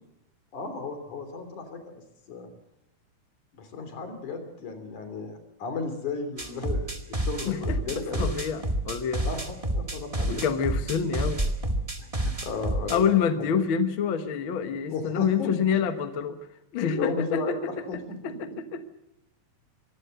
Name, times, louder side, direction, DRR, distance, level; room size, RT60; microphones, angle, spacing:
voice 1, 0.5-2.0 2.3-2.5 3.5-8.3 9.2-9.4 9.7-10.4 12.0-13.1 13.4-13.5 14.9-15.5 16.9-18.0, left 4 dB, 70° left, 8 dB, 4.6 m, -34 dB
sound 1, 6.4-13.0, right 1 dB, 15° right, 1.2 m, -28 dB
voice 2, 7.4-9.2 10.2-11.4 12.9-16.4 16.7-17.6 18.2-18.9, left 7 dB, 55° left, 9 dB, 1.6 m, -27 dB
23.5 x 16.5 x 7.8 m, 0.89 s
omnidirectional pair, 3.6 m